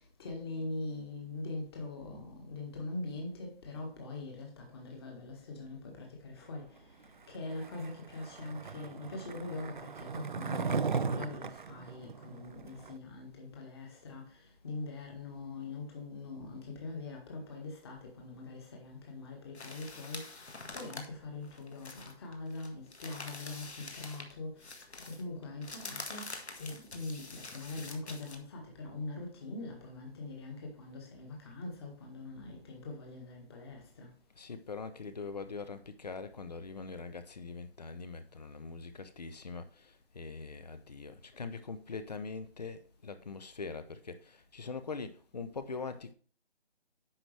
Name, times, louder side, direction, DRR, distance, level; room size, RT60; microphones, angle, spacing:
voice 1, 0.2-6.6 7.3-14.2 14.6-20.2 20.7-24.5 25.2-26.3 26.6-34.1, left 2 dB, 25° left, 1.7 m, -42 dB
Skateboard, 7.5-12.9, right 5 dB, 50° right, 0.5 m, -37 dB
sound 1, 19.5-24.3 24.6-28.4, left 3 dB, 85° left, 1.8 m, -46 dB
voice 2, 34.4-46.1, left 4 dB, 40° left, 0.8 m, -42 dB
9.9 x 6.3 x 3.3 m
figure-of-eight pair, 165°, 32 cm